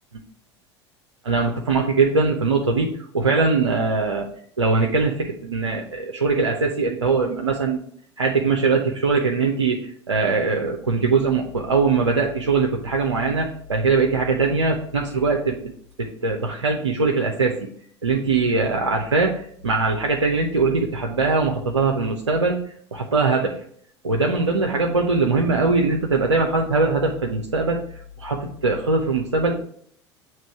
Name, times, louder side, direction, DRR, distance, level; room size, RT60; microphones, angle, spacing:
voice 1, 1.2-4.3 4.6-7.8 8.2-15.7 16.0-17.6 18.0-22.6 22.9-23.6 24.0-27.8 28.2-29.5, right 4 dB, 85° right, 1 dB, 0.6 m, -21 dB
7.4 x 3.1 x 4.6 m, 0.62 s
figure-of-eight pair, 75°, 15 cm